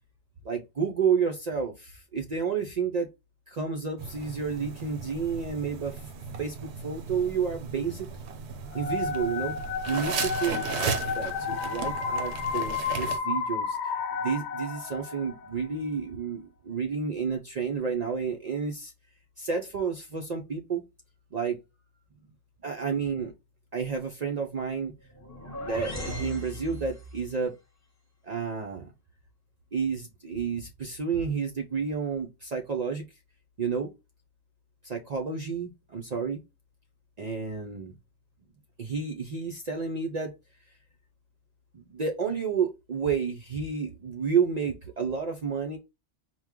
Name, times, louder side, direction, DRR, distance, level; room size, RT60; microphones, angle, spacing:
voice 1, 0.4-3.1 3.5-6.0 6.4-8.1 8.7-9.5 9.9-13.8 14.2-18.9 19.4-20.8 21.3-21.6 22.6-23.3 23.7-24.9 25.6-27.5 28.2-28.9 29.7-33.0 33.6-33.9 34.8-36.4 37.2-37.9 38.8-40.3 41.7-45.8, right 6 dB, 50° right, 0.5 m, -30 dB
sound 1, 4.0-13.2, right 6 dB, 70° right, 0.9 m, -36 dB
sound 2, 8.7-15.5, left 5 dB, 70° left, 0.9 m, -32 dB
sound 3, 25.0-27.3, left 1 dB, 15° left, 0.7 m, -38 dB
4.5 x 2.1 x 3.5 m
omnidirectional pair, 1.2 m